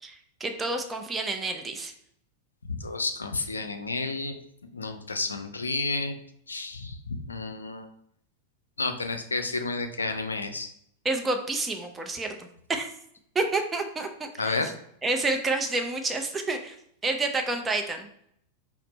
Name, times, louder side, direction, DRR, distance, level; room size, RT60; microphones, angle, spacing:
voice 1, 0.0-1.9 11.0-12.9 13.3-14.6 15.0-16.8 17.0-18.1, right 3 dB, 15° right, 4 dB, 0.5 m, -29 dB
voice 2, 2.7-4.4 4.7-6.1 6.5-7.9 8.8-10.7 14.4-14.7, left 3 dB, 75° left, 7 dB, 0.4 m, -31 dB
4.2 x 2.1 x 4.0 m, 0.70 s
figure-of-eight pair, 90°, 0 cm